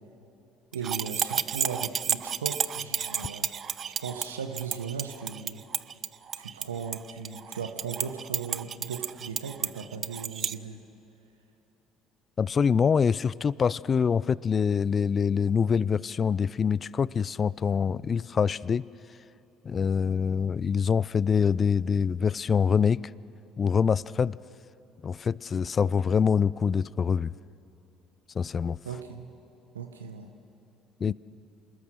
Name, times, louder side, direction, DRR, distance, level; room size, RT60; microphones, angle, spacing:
sound 1, 0.7-10.5, right 8 dB, 45° right, 0.6 m, -32 dB
voice 1, 0.7-3.5 4.0-5.6 6.3-10.8 28.8-29.3 29.7-30.3 31.1-31.2, right 6 dB, 90° right, 6 dB, 1.0 m, -37 dB
voice 2, 12.4-18.8 19.6-23.1 23.6-24.4 25.0-27.3 28.3-28.8 31.0-31.1, left 6 dB, 40° left, 22 dB, 0.4 m, -25 dB
27.5 x 20.0 x 6.3 m, 3.0 s
hypercardioid pair, 60°, 0 cm